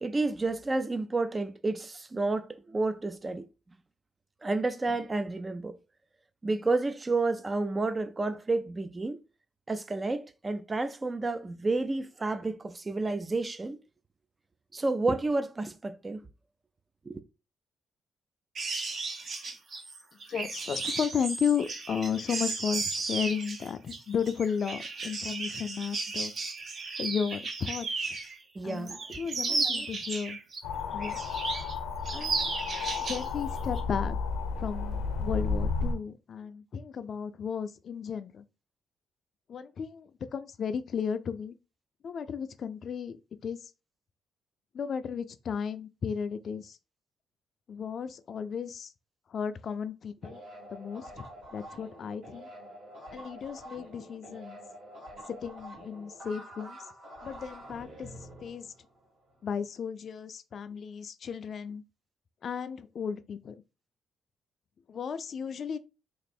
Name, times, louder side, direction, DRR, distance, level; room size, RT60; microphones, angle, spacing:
voice 1, 0.0-3.5 4.4-5.8 6.4-9.2 9.7-13.8 14.7-16.2 17.1-17.2 28.6-29.2 29.5-29.9, right 3 dB, 25° right, 0.4 m, -30 dB
sound 1, 18.5-28.4 28.7-30.6 31.0-31.7 32.0-33.3 33.6-33.8, right 3 dB, 50° right, 0.8 m, -34 dB
voice 2, 20.3-26.3 27.0-27.9 28.6-30.4 30.9-31.2 32.1-32.5 33.1-34.2 34.6-38.4 39.5-41.6 42.0-43.2 43.4-43.6 44.7-46.8 47.7-48.9 49.3-50.4 50.7-51.2 51.5-52.5 53.1-54.6 55.3-56.8 57.2-58.1 58.4-58.7 59.4-61.8 62.4-63.6 64.9-65.8, left 7 dB, 55° left, 0.4 m, -34 dB
sound 2, 30.6-36.0, left 4 dB, 90° left, 0.7 m, -32 dB
sound 3, 50.2-59.4, equal, 80° right, 2.0 m, -47 dB
3.1 x 2.5 x 4.3 m
cardioid pair, 90°, 0 cm